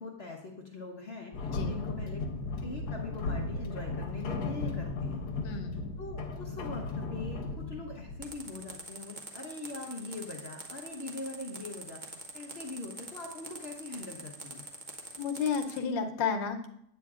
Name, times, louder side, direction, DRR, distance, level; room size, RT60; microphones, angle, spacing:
voice 1, 0.0-2.2 2.6-5.2 6.0-14.6, left 3 dB, 45° left, 0 dB, 0.8 m, -42 dB
sound 1, 1.3-8.7, left 3 dB, 65° left, 1.4 m, -36 dB
voice 2, 5.4-5.8 15.2-16.7, left 6 dB, 85° left, 5 dB, 1.5 m, -32 dB
sound 2, 8.2-15.8, right 3 dB, 40° right, 0.7 m, -44 dB
9.1 x 8.4 x 2.4 m, 0.74 s
omnidirectional pair, 2.0 m